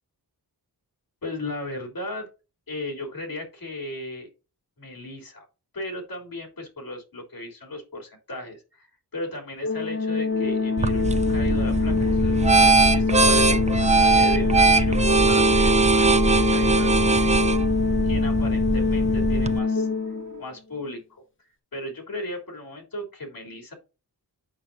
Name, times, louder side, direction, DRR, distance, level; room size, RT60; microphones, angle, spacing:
voice 1, 1.2-2.3 2.7-4.3 4.8-5.4 5.7-8.9 9.1-17.4 18.0-19.9 20.4-21.2 21.7-23.7, left 1 dB, 60° left, 1 dB, 3.2 m, -36 dB
Organ, 9.6-20.5, left 4 dB, 30° left, 0.9 m, -24 dB
sound 1, 10.3-20.4, left 3 dB, 50° right, 1.2 m, -39 dB
sound 2, 10.8-19.6, right 4 dB, 20° right, 0.4 m, -21 dB
8.5 x 6.5 x 2.6 m, 0.31 s
wide cardioid pair, 130°, 39 cm